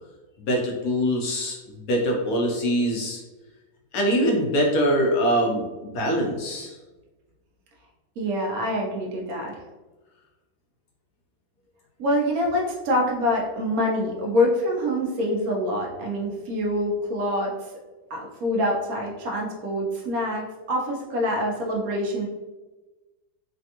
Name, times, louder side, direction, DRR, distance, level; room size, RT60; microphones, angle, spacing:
voice 1, 0.4-3.2 3.9-6.8, equal, 70° left, 0 dB, 1.0 m, -23 dB
voice 2, 8.2-9.6 12.0-17.7 18.1-22.3, left 1 dB, 70° right, -1 dB, 1.0 m, -25 dB
3.3 x 2.2 x 2.7 m, 1.2 s
omnidirectional pair, 1.8 m